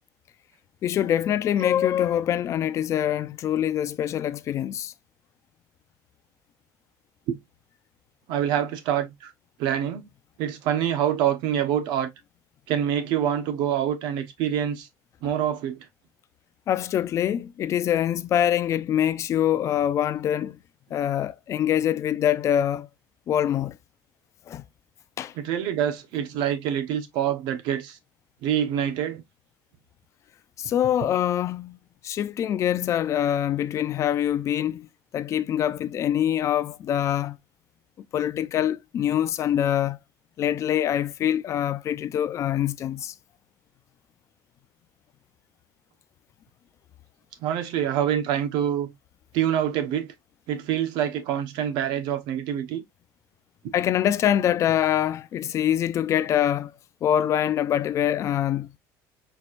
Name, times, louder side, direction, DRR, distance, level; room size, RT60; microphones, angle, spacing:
voice 1, 0.8-4.9 16.7-20.6 20.9-22.9 23.3-23.8 24.5-24.6 25.2-25.3 30.6-31.8 32.0-34.9 35.1-37.4 38.1-40.0 40.4-43.1 53.7-56.7 57.0-58.7, left 10 dB, 40° left, 0.4 m, -24 dB
voice 2, 8.3-9.3 9.6-10.1 10.4-12.1 12.7-14.9 15.2-15.8 25.3-28.0 28.4-29.2 47.4-48.9 49.3-50.1 50.5-52.8, right 10 dB, 70° right, 1.1 m, -26 dB
4.6 x 4.4 x 2.5 m
cardioid pair, 140°, 8 cm